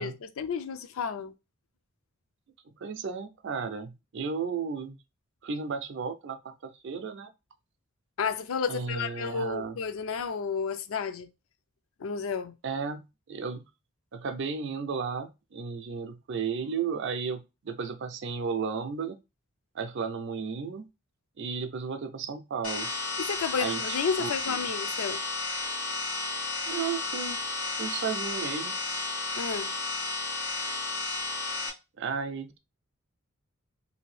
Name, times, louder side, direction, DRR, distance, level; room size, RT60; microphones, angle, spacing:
voice 1, 0.0-1.3 8.2-11.3 12.0-12.6 23.2-25.2 29.3-29.7, left 6 dB, 70° left, 0.4 m, -32 dB
voice 2, 2.8-5.0 5.4-7.3 8.7-9.8 12.6-13.6 14.1-19.2 19.7-20.9 21.4-22.9 23.6-24.6 26.7-28.7 32.0-32.6, right 5 dB, 55° right, 0.4 m, -34 dB
sound 1, 22.6-31.7, left 3 dB, 90° left, 1.1 m, -33 dB
2.7 x 2.6 x 3.1 m
head